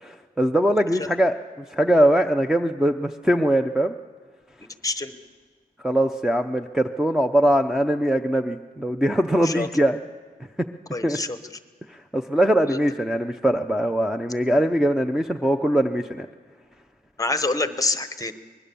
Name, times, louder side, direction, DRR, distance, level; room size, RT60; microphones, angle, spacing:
voice 1, 0.0-3.9 5.8-10.0 11.0-11.2 11.9-16.3, right 1 dB, 5° right, 2 dB, 0.6 m, -21 dB
voice 2, 4.8-5.1 9.4-9.7 10.9-11.4 12.7-12.8 17.2-18.3, left 3 dB, 20° left, 10 dB, 1.0 m, -26 dB
24.5 x 21.0 x 6.9 m, 1.5 s
wide cardioid pair, 175°, 16 cm